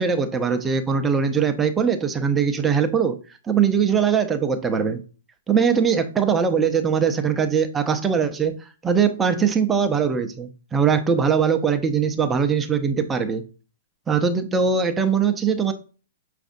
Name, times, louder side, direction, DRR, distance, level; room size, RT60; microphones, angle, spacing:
voice 1, 0.0-3.2 3.5-5.0 5.5-8.5 8.8-13.4 14.1-15.7, right 6 dB, 15° right, 0.6 m, -21 dB
6.1 x 2.5 x 2.5 m
hypercardioid pair, 120°, 0 cm